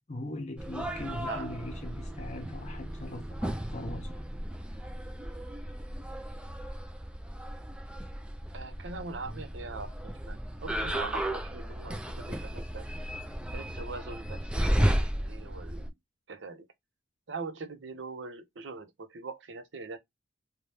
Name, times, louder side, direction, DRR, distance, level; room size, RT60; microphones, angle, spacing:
voice 1, 0.0-4.2, left 1 dB, 35° left, 0.7 m, -40 dB
sound 1, 0.6-15.9, equal, 5° right, 0.3 m, -34 dB
voice 2, 8.5-12.9 13.5-15.9 16.3-16.7 17.3-20.0, right 4 dB, 75° right, 0.6 m, -42 dB
2.7 x 2.2 x 3.3 m
head